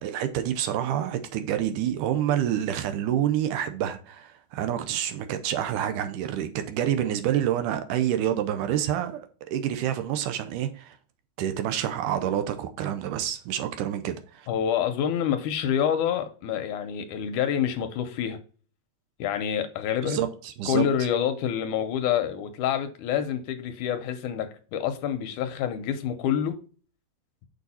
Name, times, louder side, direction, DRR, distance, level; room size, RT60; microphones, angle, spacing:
voice 1, 0.0-9.3 9.5-11.0 11.4-14.5 20.0-20.8, right 10 dB, 80° right, 2.1 m, -28 dB
voice 2, 14.5-18.4 19.2-20.2 20.7-26.6, left 9 dB, 75° left, 2.0 m, -27 dB
6.6 x 5.1 x 4.2 m
omnidirectional pair, 3.9 m